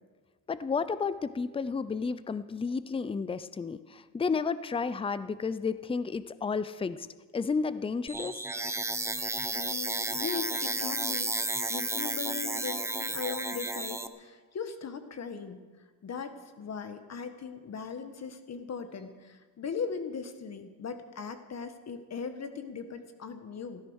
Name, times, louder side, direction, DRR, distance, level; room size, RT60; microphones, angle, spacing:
voice 1, 0.5-7.1 7.3-8.4, left 5 dB, 15° left, 14 dB, 0.6 m, -32 dB
sound 1, 8.1-14.1, right 2 dB, 5° right, 0.9 m, -32 dB
voice 2, 9.5-15.6 16.0-23.8, left 6 dB, 40° left, 8 dB, 1.6 m, -39 dB
16.0 x 14.0 x 6.5 m, 1.4 s
cardioid pair, 120°, 38 cm